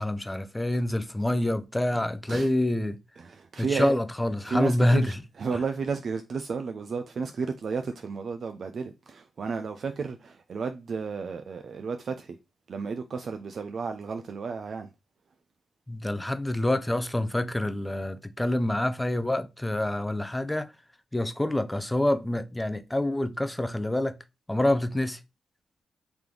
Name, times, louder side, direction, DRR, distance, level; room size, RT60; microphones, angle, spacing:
voice 1, 0.0-3.0 3.6-5.2 15.9-20.7 21.1-24.2 24.5-25.2, left 1 dB, 10° left, 0.5 m, -27 dB
voice 2, 3.2-4.0 4.4-12.4 12.7-14.9, right 5 dB, 55° right, 0.4 m, -32 dB
3.4 x 3.0 x 3.8 m
cardioid pair, 80°, 0 cm